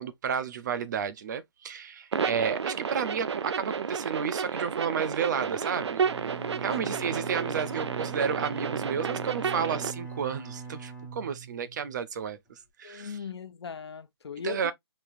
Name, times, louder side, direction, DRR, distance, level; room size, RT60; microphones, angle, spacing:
voice 1, 0.0-12.4 12.8-13.1 14.4-14.7, right 7 dB, 45° right, 0.7 m, -32 dB
sound 1, 2.1-9.9, right 6 dB, 80° right, 0.5 m, -32 dB
Bowed string instrument, 6.0-12.0, right 4 dB, 10° left, 1.8 m, -41 dB
voice 2, 6.8-7.2 12.8-14.7, left 6 dB, 70° left, 0.8 m, -39 dB
5.3 x 2.9 x 2.5 m
hypercardioid pair, 155°, 14 cm